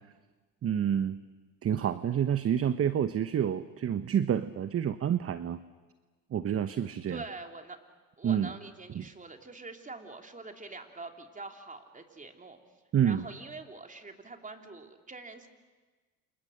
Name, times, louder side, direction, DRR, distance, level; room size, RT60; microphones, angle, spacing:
voice 1, 0.6-1.2 1.6-5.6 6.3-7.2 8.2-8.5 8.9-9.1 12.9-13.2, right 9 dB, 35° right, 13 dB, 1.0 m, -28 dB
voice 2, 7.1-7.8 8.2-12.6 13.0-15.5, right 3 dB, 20° right, 4 dB, 3.4 m, -45 dB
29.5 x 27.5 x 6.6 m, 1.3 s
hypercardioid pair, 70°, 39 cm